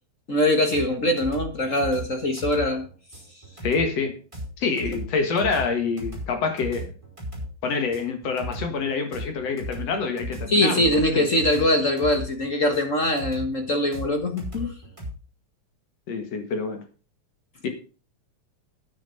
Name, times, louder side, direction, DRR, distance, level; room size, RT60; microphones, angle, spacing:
voice 1, 0.3-2.8 10.5-14.7, left 1 dB, 45° left, 6 dB, 1.0 m, -22 dB
sound 1, 0.7-15.1, right 1 dB, 10° right, 4.8 m, -36 dB
voice 2, 3.6-4.2 4.6-6.9 7.6-11.2 16.1-16.8 17.6-17.7, left 4 dB, 60° left, 6 dB, 2.8 m, -26 dB
9.7 x 9.2 x 5.7 m, 0.35 s
omnidirectional pair, 3.4 m